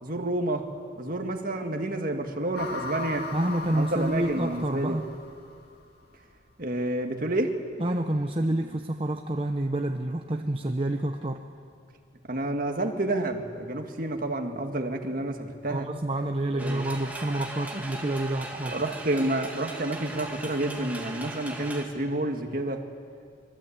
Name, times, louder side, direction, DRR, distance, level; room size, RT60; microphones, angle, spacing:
voice 1, 0.0-0.7 1.0-3.3 3.7-5.0 6.6-7.6 12.3-15.9 16.6-16.8 18.6-22.8, right 1 dB, 45° right, 4 dB, 1.9 m, -29 dB
sound 1, 2.5-5.8, left 3 dB, 50° left, 2.2 m, -38 dB
voice 2, 3.3-5.1 7.8-11.4 15.7-18.8, right 1 dB, 30° right, 4 dB, 0.9 m, -28 dB
sound 2, 16.6-21.8, right 2 dB, 10° right, 2.3 m, -39 dB
25.5 x 22.0 x 8.7 m, 2.3 s
head